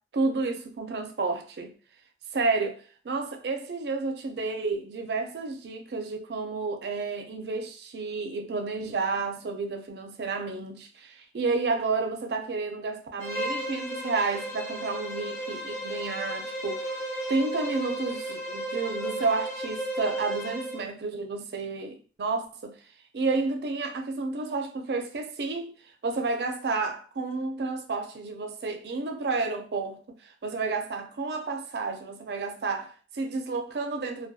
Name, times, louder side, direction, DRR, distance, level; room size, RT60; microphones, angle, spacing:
voice 1, 0.1-1.7 2.3-16.8 17.3-22.7 23.1-25.7 26.0-30.0 30.4-34.3, right 3 dB, 70° right, 0.4 m, -31 dB
Bowed string instrument, 13.2-20.9, right 1 dB, 15° left, 0.5 m, -34 dB
2.2 x 2.2 x 2.6 m
head